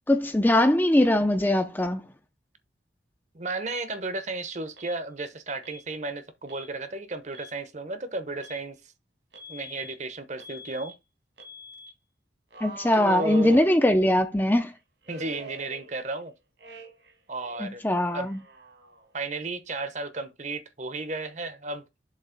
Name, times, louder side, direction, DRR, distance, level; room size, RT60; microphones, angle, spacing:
voice 1, 0.1-2.0 12.6-14.7 17.6-18.4, left 1 dB, 10° left, 0.6 m, -21 dB
voice 2, 3.3-8.8 9.5-10.9 12.9-13.6 15.1-16.3 17.3-17.8 18.1-18.3 19.1-21.8, right 3 dB, 40° right, 0.9 m, -33 dB
Alarm, 4.8-5.0 5.6-5.9 6.5-6.7 7.2-7.6 8.4-8.6 9.3-9.9 10.4-10.9 11.4-11.9 12.5-14.1 15.0-16.2 16.6-17.1 17.4-19.1, equal, 70° right, 1.9 m, -45 dB
7.4 x 3.1 x 5.8 m
head